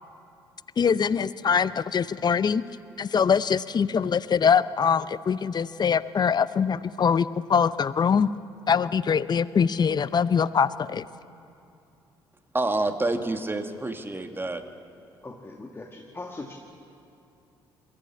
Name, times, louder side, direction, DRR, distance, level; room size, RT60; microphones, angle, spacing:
voice 1, 0.8-2.6 3.0-8.3 8.7-11.0, left 6 dB, 35° left, 17 dB, 0.6 m, -23 dB
voice 2, 12.5-14.6, right 2 dB, 20° right, 7 dB, 1.8 m, -28 dB
voice 3, 15.2-16.5, left 2 dB, 20° left, 2 dB, 1.9 m, -40 dB
22.0 x 14.5 x 8.5 m, 2.7 s
hypercardioid pair, 50°, 12 cm